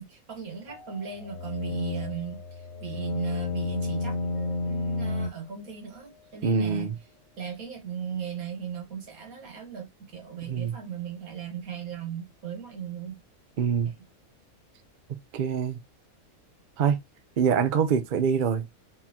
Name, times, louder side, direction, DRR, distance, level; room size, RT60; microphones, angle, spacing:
voice 1, 0.0-6.9 7.4-13.2, right 8 dB, 90° right, 1.8 m, -38 dB
sound 1, 0.7-5.3, left 2 dB, 75° left, 1.2 m, -31 dB
voice 2, 6.4-6.9 10.5-10.8 13.6-13.9 15.3-15.8 16.8-17.0 17.4-18.7, right 6 dB, 50° right, 0.6 m, -24 dB
4.2 x 3.7 x 2.9 m
omnidirectional pair, 1.5 m